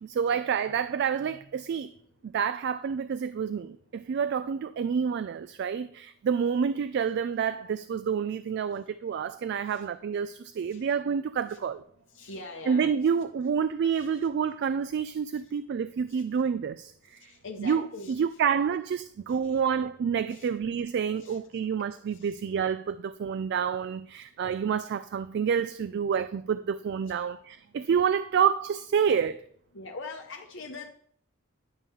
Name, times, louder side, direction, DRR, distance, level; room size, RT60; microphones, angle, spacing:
voice 1, 0.0-1.9 2.2-11.8 12.7-17.2 17.6-29.4, right 7 dB, 55° right, 0.3 m, -28 dB
voice 2, 12.1-12.9 13.9-14.1 16.1-16.2 17.2-18.4 19.3-19.6 20.3-20.5 21.2-21.4 22.2-22.3 27.1-27.2 29.7-30.9, left 3 dB, 65° left, 0.8 m, -43 dB
11.0 x 3.7 x 6.8 m
head